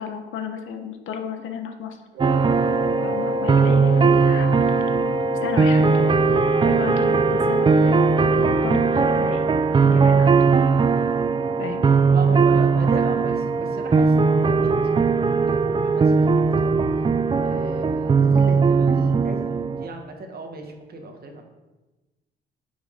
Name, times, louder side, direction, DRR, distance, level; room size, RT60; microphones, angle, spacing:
voice 1, 0.0-2.0 3.0-4.5 5.4-6.1 6.6-8.8 9.2-9.5 9.8-10.4 11.6-11.9, left 6 dB, 80° left, 5 dB, 1.2 m, -32 dB
Wind instrument woodwind instrument, 2.1-9.4, left 3 dB, 80° right, 1.8 m, -29 dB
sound 1, 2.2-19.9, right 5 dB, 25° right, 0.4 m, -19 dB
voice 2, 12.1-15.0 15.5-16.8 17.4-21.4, right 3 dB, 50° right, 3 dB, 1.6 m, -35 dB
9.3 x 6.0 x 3.8 m, 1.1 s
cardioid pair, 90°, 20 cm